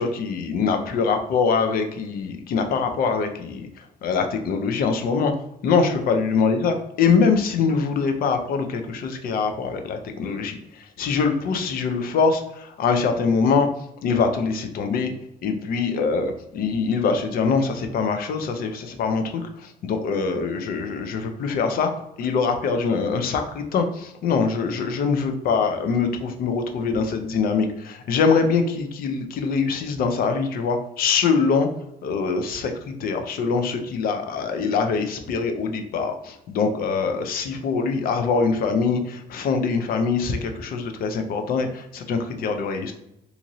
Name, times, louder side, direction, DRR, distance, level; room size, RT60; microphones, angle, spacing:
voice 1, 0.0-3.7 4.0-5.3 5.6-10.6 11.0-13.7 14.0-15.1 15.4-19.5 19.8-21.9 22.2-31.7 32.0-42.9, left 5 dB, 65° left, 6 dB, 0.5 m, -23 dB
2.9 x 2.5 x 2.6 m, 0.83 s
cardioid pair, 155°, 16 cm